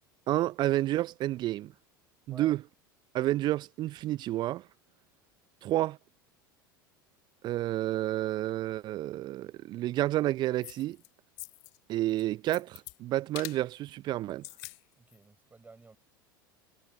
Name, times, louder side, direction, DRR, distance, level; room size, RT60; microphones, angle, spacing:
voice 1, 0.3-1.7 2.3-2.6 3.1-4.6 5.6-6.0 7.4-11.0 11.9-14.4, right 15 dB, 40° right, 0.8 m, -30 dB
sound 1, 10.6-11.1 11.4-11.8 12.1-13.0 13.3-13.6 14.3-14.8 15.1-15.2, left 38 dB, 55° left, 1.2 m, -44 dB
voice 2, 15.0-16.0, right 3 dB, 15° right, 5.2 m, -52 dB
figure-of-eight pair, 75°, 11 cm